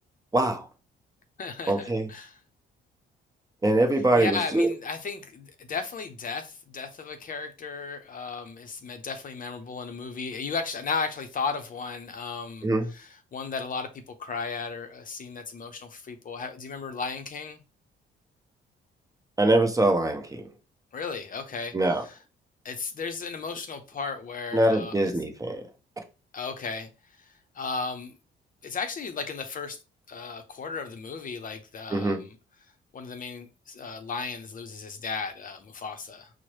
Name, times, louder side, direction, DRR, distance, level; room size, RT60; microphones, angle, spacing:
voice 1, 0.3-0.6 1.7-2.0 3.6-4.7 12.6-12.9 19.4-20.4 21.7-22.0 24.5-25.6 31.9-32.2, right 1 dB, 15° right, 0.7 m, -23 dB
voice 2, 1.4-2.4 4.1-17.6 20.9-22.2 22.6-25.1 26.3-26.9 27.3-28.2 28.6-29.8 30.1-32.4 32.9-36.3, left 4 dB, 45° left, 0.6 m, -35 dB
4.5 x 2.1 x 3.0 m
cardioid pair, 90°, 20 cm